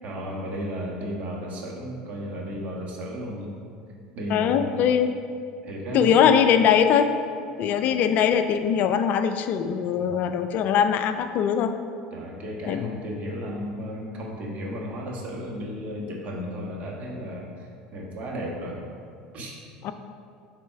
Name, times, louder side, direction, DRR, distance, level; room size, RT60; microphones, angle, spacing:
voice 1, 0.0-3.5 4.1-4.9 5.6-6.4 9.9-10.4 12.1-18.8 19.3-19.6, equal, 45° right, -2 dB, 1.4 m, -34 dB
voice 2, 4.3-5.1 5.9-7.1 7.6-11.7 12.7-12.9 19.8-19.9, left 8 dB, 55° left, 9 dB, 0.4 m, -21 dB
4.4 x 4.1 x 5.7 m, 2.3 s
hypercardioid pair, 85°, 3 cm